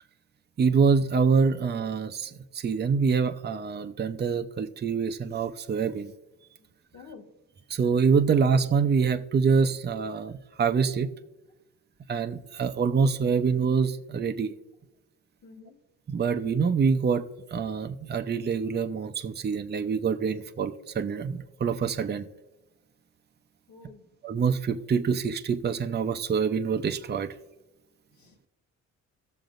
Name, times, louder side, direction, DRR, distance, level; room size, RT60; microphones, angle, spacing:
voice 1, 0.6-6.1 7.7-11.1 12.1-14.5 16.1-17.2 17.5-22.3 24.2-27.3, right 5 dB, 35° right, 7 dB, 0.7 m, -25 dB
voice 2, 6.9-7.3 15.4-15.8 23.7-24.1 28.1-28.5, left 4 dB, 75° left, 4 dB, 1.6 m, -49 dB
18.0 x 6.7 x 2.6 m, 1.0 s
cardioid pair, 90°, 30 cm